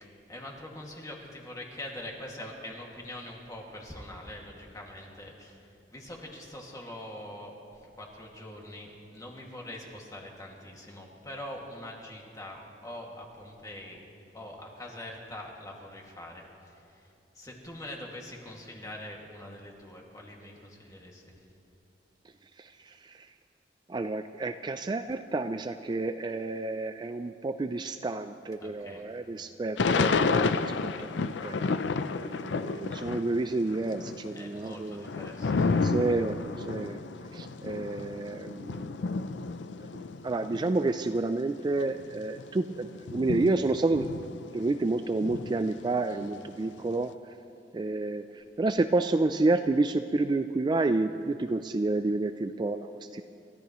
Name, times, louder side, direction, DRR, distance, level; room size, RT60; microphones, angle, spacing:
voice 1, 0.0-14.0 14.3-21.4 28.6-29.1 34.3-35.8 46.1-46.4, left 1 dB, 20° left, -1 dB, 2.1 m, -44 dB
voice 2, 22.6-23.3 23.9-31.7 32.2-35.1 35.8-37.0 37.3-38.9 39.8-39.9 40.2-44.1 44.5-47.1 47.7-53.2, right 2 dB, 25° right, 9 dB, 0.3 m, -30 dB
Thunder / Rain, 29.8-33.4 33.7-40.8 41.4-41.5 41.7-44.8 45.2-46.9, left 4 dB, 85° left, 0.5 m, -31 dB
28.5 x 14.0 x 3.1 m, 2.7 s
head